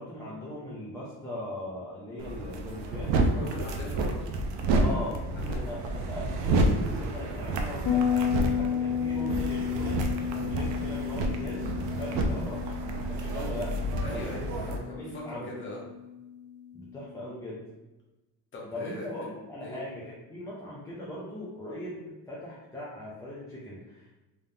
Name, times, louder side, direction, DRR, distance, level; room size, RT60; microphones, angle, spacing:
voice 1, 0.0-3.7 4.7-5.2 5.5-11.6 11.9-13.8 14.1-14.6 15.0-15.5 16.7-17.7 18.7-24.2, left 1 dB, 10° left, -7 dB, 0.4 m, -39 dB
sound 1, 2.2-14.8, right 2 dB, 80° right, 0.7 m, -30 dB
voice 2, 3.3-4.3 4.7-5.8 12.1-12.3 14.0-15.8 18.5-19.1 19.6-19.8, left 2 dB, 25° left, -4 dB, 1.0 m, -40 dB
Bass guitar, 7.9-17.2, left 8 dB, 85° left, 1.0 m, -33 dB
3.6 x 3.4 x 2.7 m, 1.1 s
cardioid pair, 170°, 43 cm